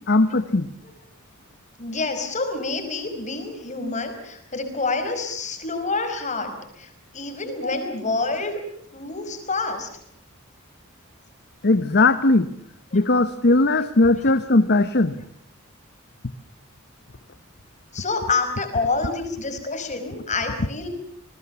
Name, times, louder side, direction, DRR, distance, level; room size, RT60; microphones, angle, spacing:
voice 1, 0.1-0.7 7.6-7.9 11.6-12.5 12.9-15.1, left 2 dB, 55° left, 11 dB, 1.1 m, -19 dB
voice 2, 1.8-8.6 8.9-9.9 12.9-13.0 17.9-20.9, left 3 dB, 35° left, 7 dB, 5.1 m, -28 dB
29.0 x 20.5 x 7.0 m, 0.67 s
head